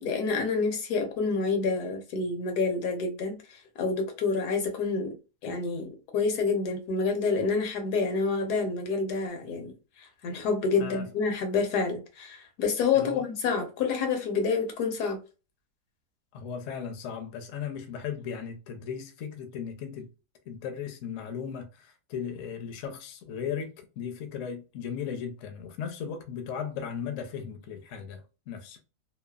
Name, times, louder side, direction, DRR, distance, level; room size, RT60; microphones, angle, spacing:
voice 1, 0.0-5.2 5.4-15.2, left 4 dB, 85° left, 1.3 m, -28 dB
voice 2, 16.3-20.1 20.5-28.8, left 7 dB, 65° left, 0.9 m, -37 dB
3.1 x 2.0 x 2.3 m
omnidirectional pair, 1.7 m